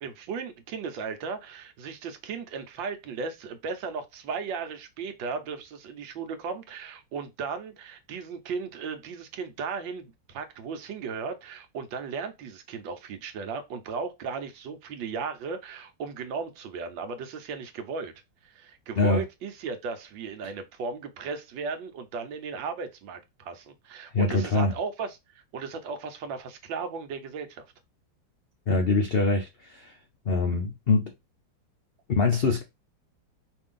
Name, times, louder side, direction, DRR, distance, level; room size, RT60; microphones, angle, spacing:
voice 1, 0.0-18.1 18.4-27.7, right 5 dB, 80° right, 1.5 m, -36 dB
voice 2, 24.1-24.7 28.7-29.9 30.3-31.1 32.1-32.6, left 3 dB, 75° left, 0.5 m, -24 dB
5.1 x 2.6 x 3.6 m
omnidirectional pair, 2.0 m